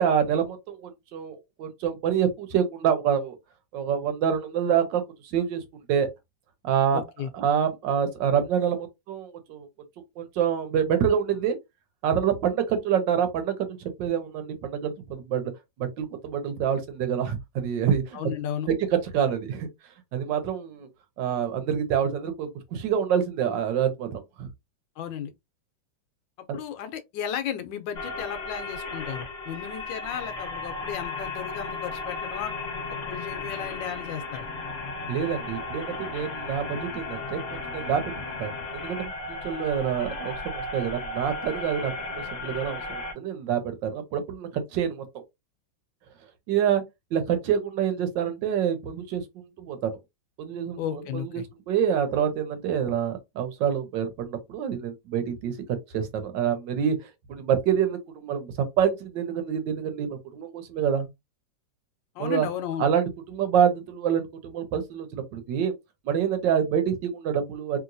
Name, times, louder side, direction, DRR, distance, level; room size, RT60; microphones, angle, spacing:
voice 1, 0.0-3.4 3.7-5.6 5.9-6.1 6.6-7.0 7.3-9.7 10.2-11.6 12.0-13.5 13.8-15.5 15.8-18.2 18.7-18.8 19.1-19.7 20.1-20.9 21.2-24.5 26.5-26.6 35.1-37.4 37.7-38.1 38.4-39.1 39.4-45.0 46.5-46.8 47.1-50.0 50.4-57.0 57.3-61.1 62.2-62.5 62.8-65.7 66.0-67.8, right 8 dB, 75° right, 1.4 m, -26 dB
voice 2, 6.9-7.3 18.1-18.7 25.0-25.3 26.5-32.5 33.1-34.5 50.8-51.5 62.1-62.9, left 9 dB, 80° left, 1.3 m, -34 dB
sound 1, 27.9-43.1, left 3 dB, 45° left, 0.9 m, -35 dB
3.1 x 2.9 x 2.5 m
omnidirectional pair, 2.0 m